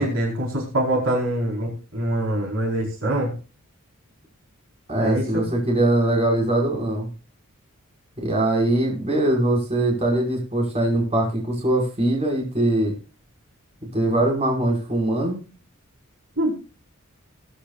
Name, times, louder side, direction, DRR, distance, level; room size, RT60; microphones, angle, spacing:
voice 1, 0.0-3.3 5.0-5.5 16.4-16.5, right 1 dB, 60° right, -1 dB, 4.5 m, -24 dB
voice 2, 4.9-7.1 8.2-12.9 13.9-15.4, right 1 dB, 30° right, -1 dB, 5.4 m, -22 dB
21.0 x 10.0 x 2.4 m, 0.33 s
head